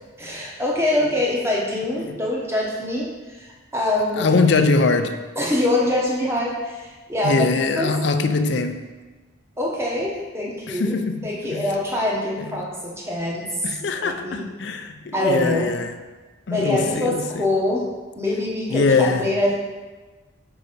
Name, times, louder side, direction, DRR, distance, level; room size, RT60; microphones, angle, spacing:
voice 1, 0.2-4.3 5.4-7.4 7.7-7.9 9.6-10.9 11.2-13.5 13.8-14.4 15.1-15.7 16.5-17.8 18.2-19.6, left 1 dB, 15° right, -4 dB, 1.0 m, -24 dB
voice 2, 4.2-5.2 7.2-8.9 10.7-11.7 12.4-12.7 13.6-16.0 16.5-17.5 18.7-19.3, left 3 dB, 60° left, 8 dB, 0.4 m, -22 dB
4.6 x 4.1 x 5.1 m, 1.3 s
head